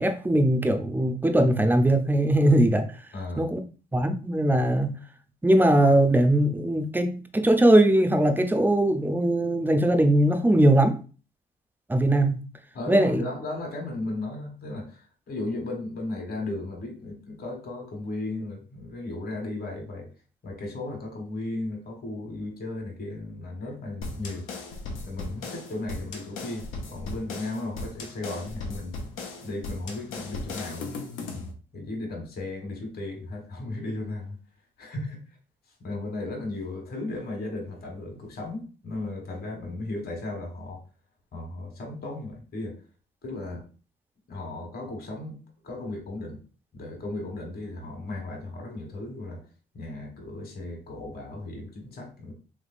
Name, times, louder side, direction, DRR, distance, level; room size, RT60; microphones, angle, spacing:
voice 1, 0.0-2.9 3.4-3.6 3.9-5.0 5.4-11.0 11.9-12.4 12.9-13.2, right 1 dB, 10° right, 0.5 m, -20 dB
voice 2, 3.1-3.5 12.7-20.1 20.4-24.5 25.0-28.9 29.4-30.9 31.7-34.4 34.8-35.2 35.8-40.8 41.3-42.8 43.2-43.6 44.3-46.4 46.7-49.4 49.7-52.3, left 2 dB, 50° left, 1.5 m, -35 dB
sound 1, 24.0-31.5, left 3 dB, 85° left, 0.8 m, -37 dB
3.4 x 3.2 x 2.5 m
cardioid pair, 90°, 20 cm